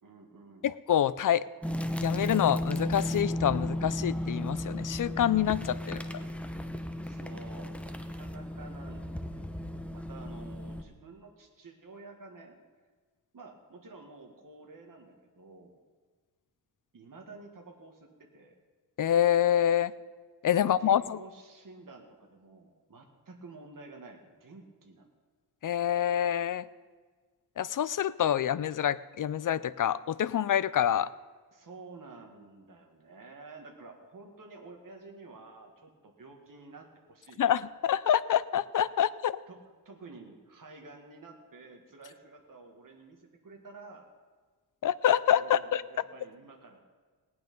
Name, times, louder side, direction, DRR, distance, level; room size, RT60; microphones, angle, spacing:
voice 1, 0.0-0.7 5.8-6.3 7.0-12.6 13.3-15.8 16.9-18.6 20.5-25.1 31.5-37.4 39.5-44.1 45.3-46.8, right 3 dB, 50° right, 2 dB, 1.8 m, -51 dB
voice 2, 0.6-1.5 2.0-6.0 19.0-19.9 20.4-21.2 25.6-26.7 27.6-31.1 37.4-39.4 44.8-45.8, left 10 dB, 50° left, 16 dB, 0.5 m, -26 dB
sound 1, 1.6-10.8, left 1 dB, 5° left, 0.7 m, -35 dB
18.0 x 9.6 x 5.3 m, 1.4 s
wide cardioid pair, 145°, 40 cm